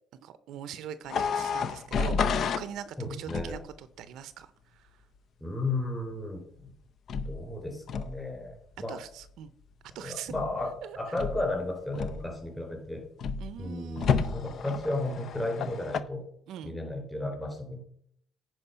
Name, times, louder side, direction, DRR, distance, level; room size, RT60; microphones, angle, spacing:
voice 1, 0.2-4.9 8.9-9.5 9.9-10.3 10.8-11.0 13.4-14.3 16.5-16.7, right 10 dB, 70° right, 14 dB, 0.6 m, -42 dB
sound 1, 1.1-2.7 3.3-3.7 7.1-7.4 7.9-8.2 10.3-10.7 11.2-11.5 11.9-12.5 13.2-13.5 14.0-16.0, left 6 dB, 50° left, 0.6 m, -31 dB
voice 2, 3.0-3.6 5.4-6.7 7.2-9.0 10.0-13.0 13.6-16.2 16.6-17.8, left 2 dB, 10° left, 2 dB, 3.5 m, -34 dB
10.0 x 4.6 x 5.6 m, 0.67 s
cardioid pair, 105°, 0 cm